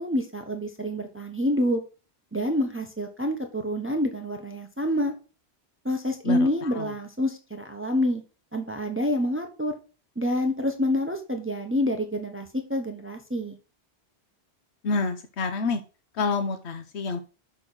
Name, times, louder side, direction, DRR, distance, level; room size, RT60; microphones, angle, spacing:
voice 1, 0.0-1.8 2.3-5.1 5.8-8.2 8.5-9.8 10.2-13.6, left 1 dB, 10° right, 5 dB, 1.1 m, -27 dB
voice 2, 6.2-6.9 14.8-15.8 16.1-17.2, left 4 dB, 85° left, 7 dB, 1.1 m, -28 dB
6.1 x 6.1 x 6.3 m, 0.34 s
omnidirectional pair, 1.1 m